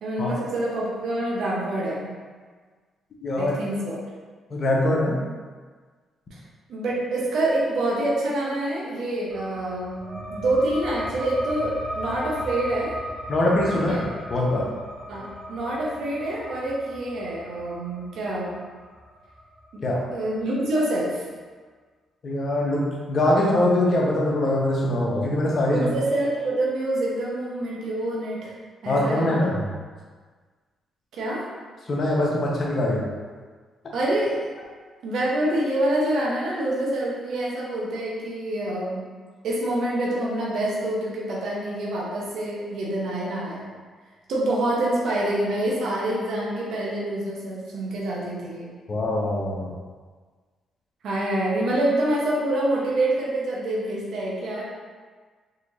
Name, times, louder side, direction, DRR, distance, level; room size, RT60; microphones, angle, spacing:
voice 1, 0.0-2.1 3.4-4.0 6.7-12.9 13.9-14.0 15.1-18.6 19.7-19.8 20.1-21.2 25.7-28.5 28.8-29.4 31.1-31.5 33.9-34.5 35.0-39.1 39.4-43.7 44.3-48.7 51.0-54.6, right 1 dB, 75° right, -4 dB, 0.9 m, -26 dB
voice 2, 3.2-3.5 4.5-5.2 13.3-14.0 14.3-14.7 19.8-20.0 22.2-22.8 23.1-25.9 28.9-29.6 31.9-33.0 48.9-49.7, left 1 dB, 50° left, -3 dB, 1.0 m, -22 dB
sound 1, 9.3-20.4, equal, 45° right, 0.7 m, -37 dB
4.2 x 2.9 x 2.6 m, 1.5 s
supercardioid pair, 65°, 0 cm